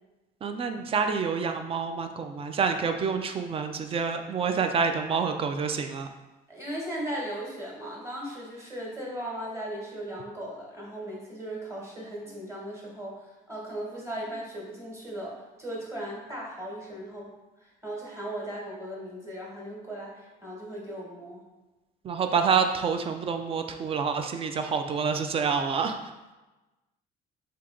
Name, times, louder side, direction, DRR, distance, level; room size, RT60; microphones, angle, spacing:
voice 1, 0.4-6.1 22.0-26.0, right 5 dB, 35° right, 7 dB, 0.4 m, -27 dB
voice 2, 6.5-17.3 17.6-21.4, right 1 dB, 15° right, -4 dB, 1.2 m, -37 dB
3.5 x 2.8 x 3.7 m, 1.1 s
cardioid pair, 110°, 17 cm